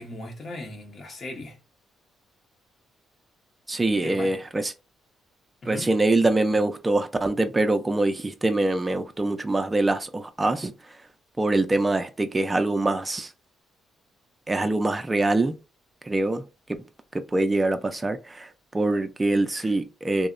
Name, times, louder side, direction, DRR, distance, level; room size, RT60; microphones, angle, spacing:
voice 1, 0.0-1.6 4.0-4.3 5.6-5.9 19.5-19.7, left 1 dB, 45° left, 0.8 m, -38 dB
voice 2, 3.7-4.7 5.7-11.0 11.4-13.3 14.5-15.6 16.0-16.4 17.1-20.3, right 2 dB, 20° right, 0.3 m, -24 dB
2.8 x 2.0 x 2.4 m
cardioid pair, 75°, 0 cm